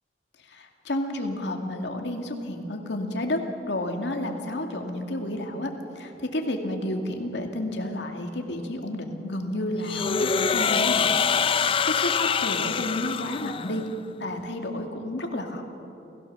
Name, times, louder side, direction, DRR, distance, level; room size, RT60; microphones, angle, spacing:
voice 1, 0.4-3.4 3.7-11.1 11.5-13.8 14.2-15.6, left 1 dB, 80° left, 3 dB, 2.4 m, -31 dB
sound 1, 9.8-13.9, left 6 dB, 30° left, 0.4 m, -25 dB
28.5 x 16.0 x 6.9 m, 2.9 s
head